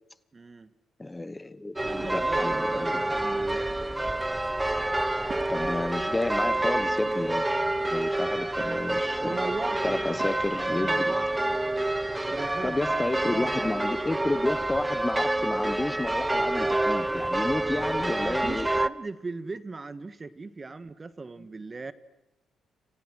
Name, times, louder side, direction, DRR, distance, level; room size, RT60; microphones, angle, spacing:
voice 1, 0.3-0.7 1.8-3.8 9.2-10.1 10.7-11.6 12.2-13.7 18.2-21.9, right 3 dB, 30° right, 1.6 m, -38 dB
voice 2, 1.0-3.0 5.5-7.5 7.9-9.4 9.8-11.1 12.6-18.7, left 2 dB, 20° left, 1.2 m, -31 dB
sound 1, 1.8-18.9, right 1 dB, 15° right, 0.9 m, -28 dB
sound 2, 5.1-10.6, right 5 dB, 55° right, 3.3 m, -48 dB
29.5 x 27.0 x 6.4 m
supercardioid pair, 65°, 0 cm